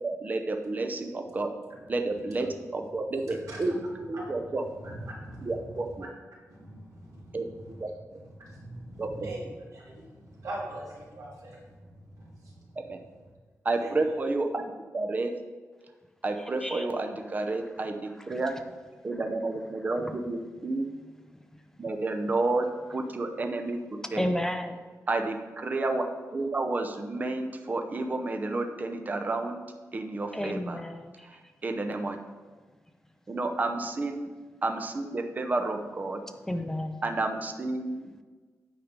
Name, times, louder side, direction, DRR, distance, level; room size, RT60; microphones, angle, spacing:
voice 1, 0.0-1.5 1.9-4.6 5.4-6.1 7.3-7.5 7.8-7.9 9.0-9.1 12.9-13.0 13.6-14.6 14.9-15.3 16.2-18.6 19.0-20.8 21.8-23.8 24.1-24.3 25.1-26.0 26.3-29.6 29.9-30.8 31.2-32.2 33.3-34.3 34.6-36.2 37.0-38.1, right 2 dB, 30° right, 4 dB, 0.7 m, -30 dB
voice 2, 2.8-13.2 13.7-14.2, right 1 dB, 75° right, -5 dB, 2.7 m, -43 dB
voice 3, 24.2-24.8 30.3-31.3 36.5-37.0, left 1 dB, 10° left, 7 dB, 0.5 m, -32 dB
8.9 x 5.0 x 5.1 m, 1.4 s
wide cardioid pair, 155°, 6 cm